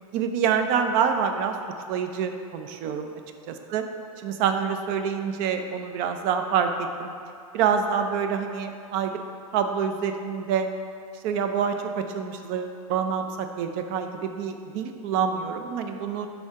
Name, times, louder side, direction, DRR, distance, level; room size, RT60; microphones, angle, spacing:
voice 1, 0.1-1.6 1.9-3.1 3.5-3.8 4.2-6.7 7.0-7.1 7.5-9.2 9.5-10.7 11.2-16.3, right 7 dB, 45° right, 7 dB, 0.5 m, -26 dB
6.1 x 4.5 x 3.6 m, 2.4 s
hypercardioid pair, 115°, 19 cm